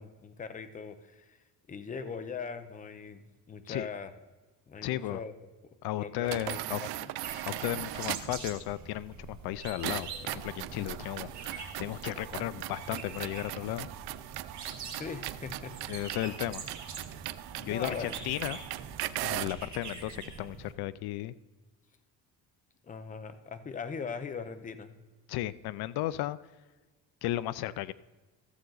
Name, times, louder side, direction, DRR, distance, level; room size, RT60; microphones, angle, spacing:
voice 1, 0.0-1.4 1.7-4.1 4.7-5.3 6.0-6.9 14.9-16.2 17.6-18.3 22.8-25.0, left 5 dB, 20° left, 9 dB, 0.6 m, -41 dB
voice 2, 4.8-5.2 5.8-6.8 7.5-13.9 15.9-16.6 17.6-18.6 19.2-21.3 25.3-26.4 27.2-27.9, left 15 dB, 80° left, 17 dB, 0.5 m, -35 dB
sound 1, 6.2-8.4 9.8-19.6, right 15 dB, 85° right, 0.6 m, -39 dB
sound 2, 7.2-20.7, right 5 dB, 50° right, 1.9 m, -45 dB
14.5 x 7.8 x 3.9 m, 1.2 s
cardioid pair, 165°, 37 cm